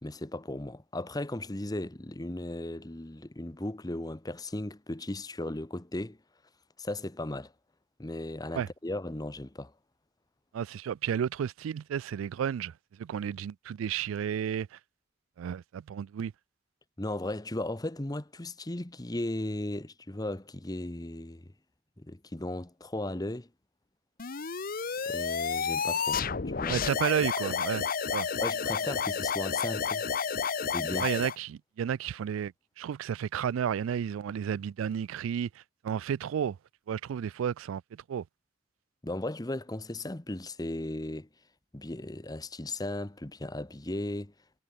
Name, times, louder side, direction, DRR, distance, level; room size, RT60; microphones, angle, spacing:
voice 1, 0.0-6.2 6.8-7.5 8.0-9.7 17.0-21.5 22.0-23.5 25.1-26.8 28.4-30.1 30.7-31.1 39.0-41.3 41.7-44.3, left 1 dB, 20° left, 1.0 m, -36 dB
voice 2, 10.5-12.7 13.0-14.7 15.4-16.3 26.7-27.9 28.1-28.3 31.0-35.5 35.8-36.6 36.9-38.2, right 8 dB, 85° right, 0.3 m, -32 dB
sound 1, 24.2-31.4, left 6 dB, 45° left, 0.8 m, -31 dB
head